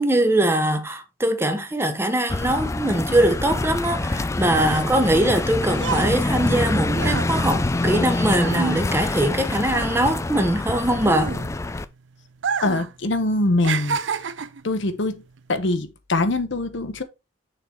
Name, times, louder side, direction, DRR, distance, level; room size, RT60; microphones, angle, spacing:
voice 1, 0.0-11.3, right 1 dB, 10° right, 0.8 m, -22 dB
sound 1, 2.3-11.9, left 2 dB, 15° left, 0.3 m, -25 dB
sound 2, 4.6-9.4 9.7-11.8 12.3-12.9 13.2-14.7 15.4-15.6, right 6 dB, 65° right, 0.5 m, -30 dB
voice 2, 12.6-14.0 14.6-15.2 15.5-17.0, left 2 dB, 65° left, 0.9 m, -23 dB
6.6 x 3.9 x 4.4 m
head